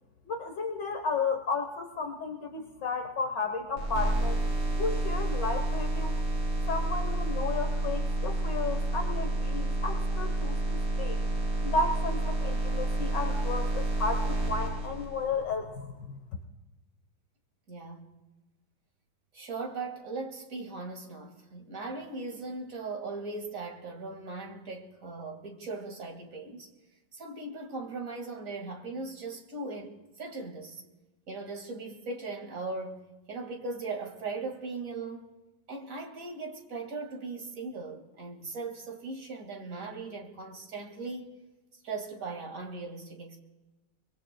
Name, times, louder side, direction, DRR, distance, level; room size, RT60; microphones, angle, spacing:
voice 1, 0.3-4.4 4.8-6.1 6.7-11.2 11.6-16.2, left 4 dB, 65° left, 1.7 m, -33 dB
sound 1, 3.8-15.4, right 2 dB, 65° right, 5.2 m, -29 dB
voice 2, 17.7-18.1 19.3-26.7 27.1-30.8 31.3-33.0 33.3-35.3 35.7-41.3 41.8-43.4, right 3 dB, 40° right, 2.3 m, -39 dB
24.5 x 22.5 x 2.2 m
omnidirectional pair, 2.2 m